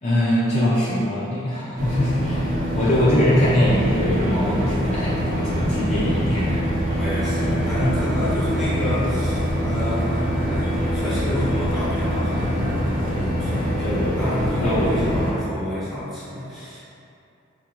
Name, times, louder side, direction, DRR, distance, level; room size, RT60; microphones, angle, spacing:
voice 1, 0.0-2.5 2.7-6.6 7.4-7.6 13.8-15.1, equal, 35° left, -8 dB, 0.4 m, -22 dB
sound 1, 1.8-15.3, equal, 45° right, 0.6 m, -24 dB
sound 2, 4.0-11.7, right 1 dB, 90° right, 0.4 m, -40 dB
voice 2, 7.0-16.8, left 1 dB, ahead, -11 dB, 0.9 m, -29 dB
4.4 x 2.4 x 2.8 m, 2.6 s
head